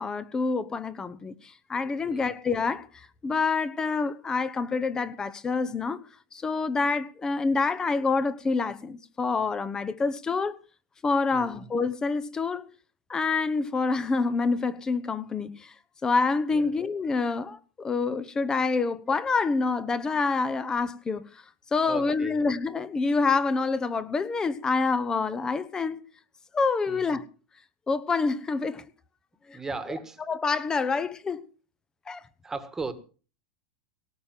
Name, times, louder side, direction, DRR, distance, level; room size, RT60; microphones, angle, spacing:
voice 1, 0.0-1.3 1.7-2.9 3.2-6.0 6.3-10.6 11.0-12.7 13.1-15.7 16.0-21.2 21.7-26.0 26.5-27.2 27.9-28.8 29.5-29.6 30.3-31.4 32.1-32.2, left 4 dB, 15° left, 1.0 m, -27 dB
voice 2, 11.3-11.7 16.5-16.7 21.9-22.4 26.9-27.2 29.5-30.2 32.4-32.9, right 3 dB, 10° right, 1.7 m, -37 dB
18.0 x 6.7 x 7.5 m
supercardioid pair, 130°, 4 cm